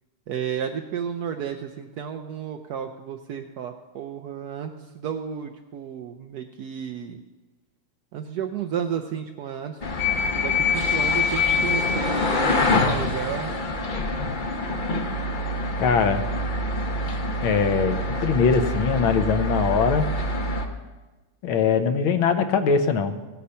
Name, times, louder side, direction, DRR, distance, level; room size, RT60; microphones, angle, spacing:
voice 1, 0.3-7.2 8.1-9.9 10.4-13.5, right 8 dB, 75° right, 5 dB, 0.9 m, -32 dB
sound 1, 9.8-20.7, left 2 dB, 50° left, 0.5 m, -25 dB
voice 2, 15.8-16.3 17.4-20.1 21.4-23.2, left 6 dB, 70° left, 9 dB, 1.6 m, -22 dB
16.0 x 8.4 x 5.6 m, 1.2 s
omnidirectional pair, 2.4 m